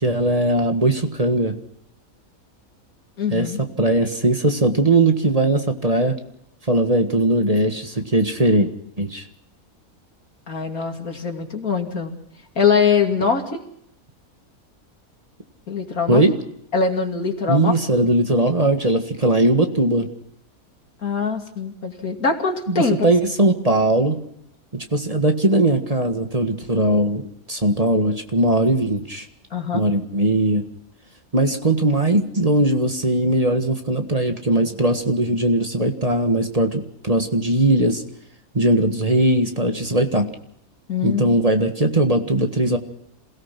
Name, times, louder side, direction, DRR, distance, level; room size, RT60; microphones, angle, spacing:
voice 1, 0.0-1.5 3.3-3.5 3.8-6.2 6.7-8.7 9.0-9.2 16.1-16.3 17.5-20.1 22.7-24.2 24.7-29.2 29.7-30.6 31.3-38.0 38.5-40.3 41.0-42.8, right 1 dB, 25° right, 5 dB, 1.7 m, -19 dB
voice 2, 3.2-3.6 10.5-12.1 12.5-13.6 15.7-16.2 16.7-17.8 21.0-23.1 29.5-29.8 40.9-41.4, left 5 dB, 80° left, 4 dB, 3.1 m, -22 dB
27.5 x 17.5 x 5.9 m, 0.73 s
omnidirectional pair, 1.5 m